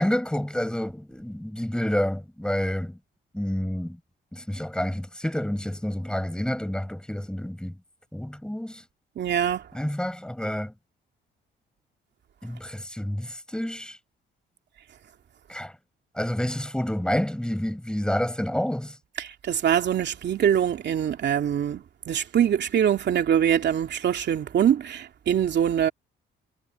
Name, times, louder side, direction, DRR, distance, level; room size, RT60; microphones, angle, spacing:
voice 1, 0.0-3.0 3.3-4.0 4.3-7.8 8.1-8.8 9.7-10.7 12.4-14.0 15.5-15.7 16.2-19.0, left 1 dB, 5° left, 5.4 m, -29 dB
voice 2, 9.2-9.6 19.2-21.8 22.1-25.9, right 9 dB, 60° right, 2.9 m, -23 dB
cardioid pair, 90°, 20 cm